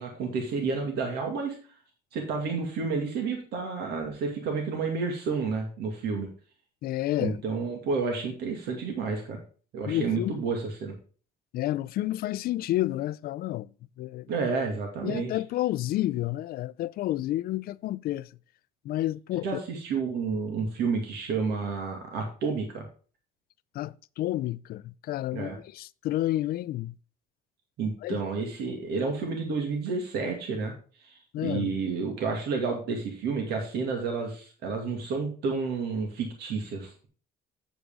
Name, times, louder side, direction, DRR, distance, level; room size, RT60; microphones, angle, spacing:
voice 1, 0.0-1.6 2.1-6.3 7.2-9.4 9.7-10.9 14.3-15.3 19.4-22.8 25.3-25.6 27.8-30.7 31.0-37.1, right 4 dB, 75° right, 2.3 m, -30 dB
voice 2, 6.8-7.4 9.9-10.4 11.5-13.7 14.0-14.3 15.0-18.3 18.8-19.6 23.7-27.0 28.0-28.2 31.3-31.8, left 15 dB, 65° left, 0.4 m, -30 dB
8.2 x 8.0 x 3.6 m
cardioid pair, 110°, 17 cm